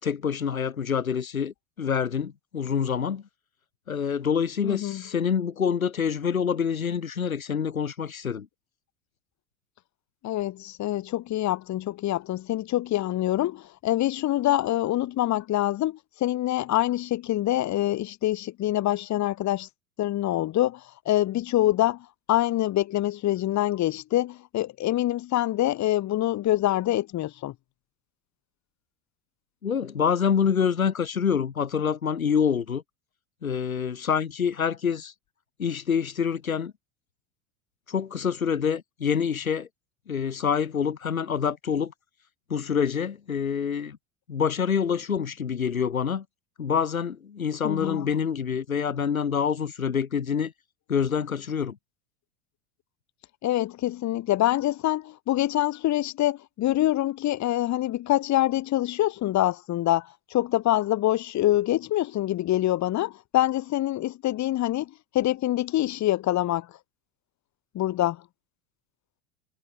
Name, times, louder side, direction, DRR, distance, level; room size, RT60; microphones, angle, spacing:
voice 1, 0.0-3.2 3.9-8.5 29.6-32.8 33.4-35.1 35.6-36.7 37.9-39.7 40.1-41.9 42.5-44.0 44.3-46.2 46.6-50.5 50.9-51.7, left 7 dB, 85° left, 3.4 m, -26 dB
voice 2, 4.6-5.0 10.2-19.7 20.0-27.5 47.6-48.1 53.4-66.7 67.7-68.2, left 14 dB, 40° left, 7.4 m, -25 dB
figure-of-eight pair, 80°, 41 cm